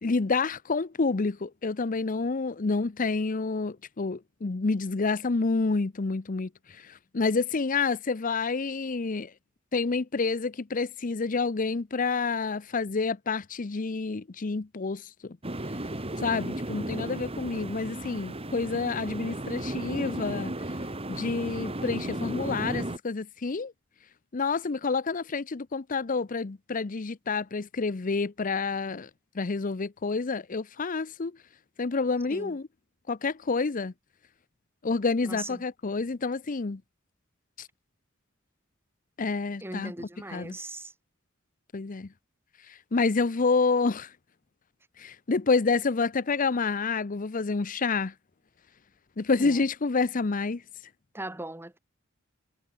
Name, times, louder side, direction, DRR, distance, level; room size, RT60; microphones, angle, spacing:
voice 1, 0.0-9.3 9.7-15.4 16.2-20.5 21.1-23.7 24.3-29.1 29.3-31.4 31.8-32.7 33.1-33.9 34.8-36.8 37.6-37.7 39.2-40.6 41.7-42.1 42.9-44.1 45.0-48.1 49.2-50.6, left 4 dB, 40° left, 0.6 m, -28 dB
sound 1, 15.4-23.0, right 1 dB, 30° right, 2.5 m, -34 dB
voice 2, 35.2-35.6 39.6-40.9 49.4-49.6 51.1-51.8, right 2 dB, 10° right, 1.7 m, -39 dB
head